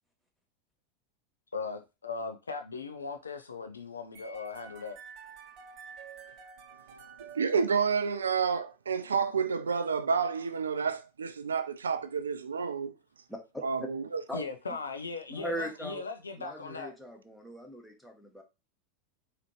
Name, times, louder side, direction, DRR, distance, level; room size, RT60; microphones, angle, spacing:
voice 1, 1.5-5.0 14.3-16.9, left 4 dB, 80° left, 0.5 m, -38 dB
sound 1, 4.1-8.3, right 6 dB, 45° right, 0.7 m, -50 dB
voice 2, 7.2-12.9 13.6-14.2, right 6 dB, 80° right, 0.4 m, -30 dB
voice 3, 13.3-13.6 14.3-14.4 15.3-16.0 16.4-18.4, right 1 dB, 5° left, 1.1 m, -39 dB
4.1 x 2.9 x 3.1 m
figure-of-eight pair, 85°, 0 cm